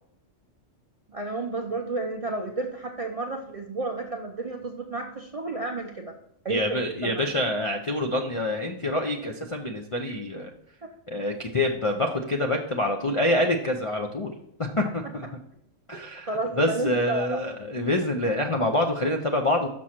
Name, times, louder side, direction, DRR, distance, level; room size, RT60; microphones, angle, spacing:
voice 1, 1.1-6.1 6.4-7.3 10.1-10.2 10.8-10.9 16.3-17.4, right 3 dB, 45° right, 1 dB, 0.4 m, -31 dB
voice 2, 6.5-10.5 11.1-14.3 14.6-15.3 15.9-16.3 16.5-19.7, left 1 dB, 50° left, 2 dB, 0.4 m, -26 dB
6.1 x 6.1 x 4.3 m, 0.75 s
omnidirectional pair, 1.4 m